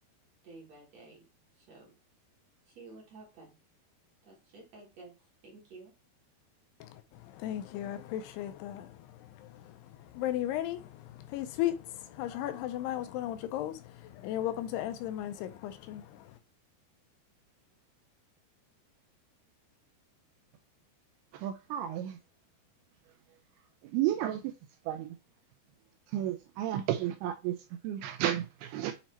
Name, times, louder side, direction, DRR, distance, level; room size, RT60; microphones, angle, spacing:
voice 1, 0.4-1.2 1.6-1.9 2.7-3.6 4.2-5.9, right 3 dB, 55° right, 2.0 m, -52 dB
voice 2, 6.8-16.4, left 12 dB, 80° left, 2.6 m, -36 dB
voice 3, 21.3-22.2 23.8-24.5 24.9-25.2 26.1-28.9, right 12 dB, 85° right, 2.3 m, -32 dB
8.1 x 2.8 x 4.3 m
omnidirectional pair, 4.8 m